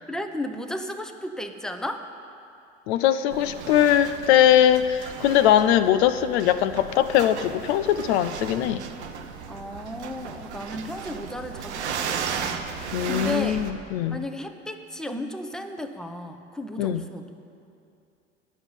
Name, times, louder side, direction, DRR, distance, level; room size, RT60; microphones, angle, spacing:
voice 1, 0.1-2.1 9.5-13.6 14.1-17.3, left 1 dB, ahead, 6 dB, 0.8 m, -34 dB
voice 2, 2.9-8.8 12.9-14.2 16.8-17.0, left 11 dB, 75° left, 12 dB, 0.5 m, -21 dB
sound 1, 3.3-13.7, right 6 dB, 90° right, 0.7 m, -35 dB
10.0 x 6.4 x 8.9 m, 2.6 s
hypercardioid pair, 65°, 33 cm